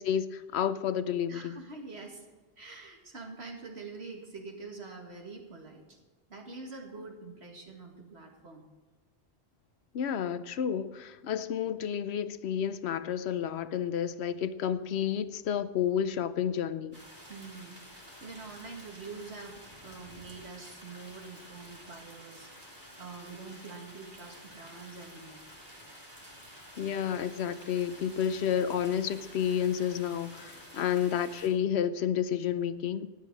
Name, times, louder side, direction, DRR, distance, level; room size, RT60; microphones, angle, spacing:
voice 1, 0.0-1.6 9.9-17.0 26.8-33.1, left 9 dB, 85° left, 0.9 m, -30 dB
voice 2, 1.3-2.3 2.6-6.0 6.3-8.7 17.3-25.4, right 4 dB, 85° right, 2.3 m, -45 dB
sound 1, 16.9-31.5, equal, 45° right, 3.5 m, -50 dB
14.0 x 10.0 x 4.7 m
omnidirectional pair, 1.1 m